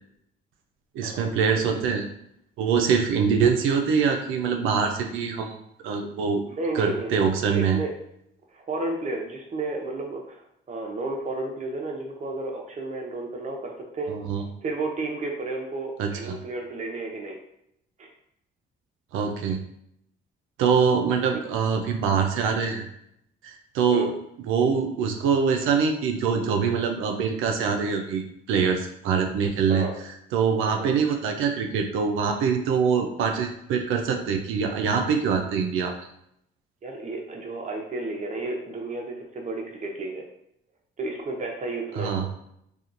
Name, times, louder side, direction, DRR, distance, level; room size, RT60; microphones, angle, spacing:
voice 1, 0.9-2.1 2.6-6.4 6.7-7.8 14.1-14.4 16.0-16.4 19.1-19.6 20.6-22.9 23.4-24.2 24.5-29.9 30.3-36.1 42.0-42.3, right 6 dB, 90° right, 4 dB, 0.4 m, -24 dB
voice 2, 6.5-7.2 7.5-7.9 8.5-10.4 10.7-14.1 14.6-17.4 18.0-18.1 21.0-21.4 23.9-24.1 29.7-29.9 30.8-30.9 36.8-40.2 41.0-42.1, right 2 dB, 35° right, 0 dB, 0.7 m, -32 dB
2.8 x 2.3 x 2.5 m, 0.75 s
cardioid pair, 90°, 20 cm